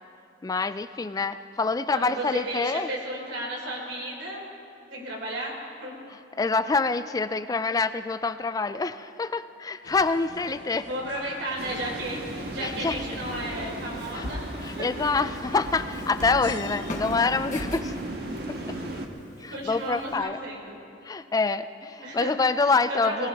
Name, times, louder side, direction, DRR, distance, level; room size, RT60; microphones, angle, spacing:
voice 1, 0.4-2.9 6.1-10.9 12.6-13.0 14.1-14.3 14.6-18.0 18.5-18.8 19.4-20.4 21.0-23.3, left 4 dB, 20° left, 12 dB, 0.3 m, -26 dB
voice 2, 2.1-4.4 4.9-5.5 5.8-5.9 10.8-14.4 14.7-15.1 19.5-20.8 22.0-22.3 22.9-23.3, right 1 dB, 80° right, -3 dB, 4.2 m, -33 dB
sound 1, 9.8-19.1, left 4 dB, 70° left, 0.6 m, -46 dB
sound 2, 11.6-19.1, right 1 dB, 60° right, 1.4 m, -36 dB
Walk footsteps, 12.0-20.2, left 1 dB, 45° left, 1.4 m, -41 dB
19.5 x 19.5 x 3.5 m, 2.5 s
head